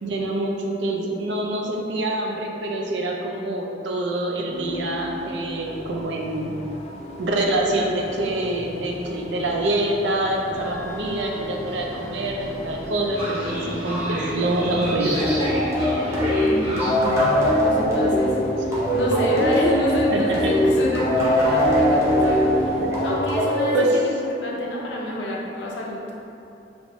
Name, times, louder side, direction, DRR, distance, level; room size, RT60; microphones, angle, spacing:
voice 1, 0.0-6.6 7.2-15.2 20.1-20.5 22.8-23.0 23.7-24.0, right 1 dB, 75° right, 0 dB, 0.4 m, -25 dB
sound 1, 4.5-23.2, equal, 35° left, 0.3 m, -34 dB
Train, 10.5-16.9, right 1 dB, 35° right, 1.1 m, -32 dB
sound 2, 15.2-24.4, equal, 15° right, 0.7 m, -21 dB
voice 2, 16.2-26.0, left 1 dB, 80° left, -3 dB, 0.6 m, -29 dB
3.4 x 3.0 x 2.5 m, 2.8 s
head